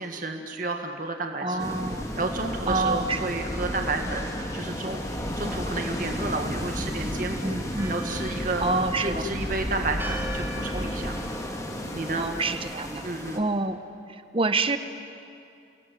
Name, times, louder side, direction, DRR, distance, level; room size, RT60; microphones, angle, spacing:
voice 1, 0.0-1.7 2.2-7.6 7.9-8.6 9.0-11.2 11.9-12.3 13.0-13.4, right 2 dB, 45° right, 3 dB, 2.0 m, -31 dB
voice 2, 1.4-2.0 2.7-3.2 7.4-8.0 8.6-9.3 12.2-13.0 13.3-13.8 14.1-14.8, right 3 dB, 30° right, 9 dB, 1.2 m, -27 dB
sound 1, 1.6-13.4, equal, 15° left, 2.3 m, -32 dB
Church bell, 7.8-13.5, equal, 10° right, 2.9 m, -41 dB
29.5 x 21.0 x 9.4 m, 2.6 s
head